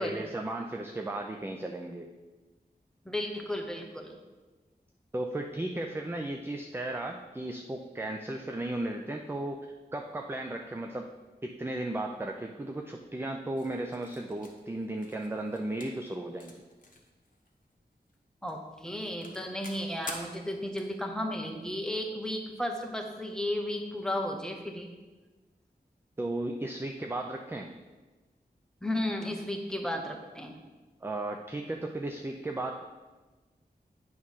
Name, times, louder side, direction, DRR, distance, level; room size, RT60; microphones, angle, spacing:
voice 1, 0.0-2.1 5.1-9.7 9.9-11.1 11.4-16.6 26.2-27.7 31.0-32.8, right 1 dB, 15° right, 3 dB, 0.4 m, -35 dB
voice 2, 3.0-4.2 18.4-24.9 28.8-30.6, left 1 dB, 5° left, 2 dB, 0.9 m, -34 dB
sound 1, 13.6-18.2 18.4-21.7, left 2 dB, 50° left, 1.1 m, -48 dB
8.5 x 3.1 x 5.5 m, 1.2 s
wide cardioid pair, 80°, 17 cm